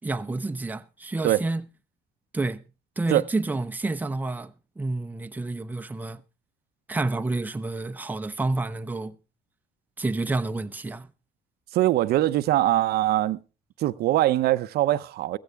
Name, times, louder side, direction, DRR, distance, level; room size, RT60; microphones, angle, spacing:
voice 1, 0.0-1.7 2.3-2.6 3.0-6.2 6.9-9.1 10.0-11.1, right 2 dB, 10° right, 0.7 m, -29 dB
voice 2, 11.7-13.4 13.8-15.4, right 15 dB, 70° right, 0.6 m, -22 dB
15.0 x 15.0 x 3.5 m
cardioid pair, 110°, 17 cm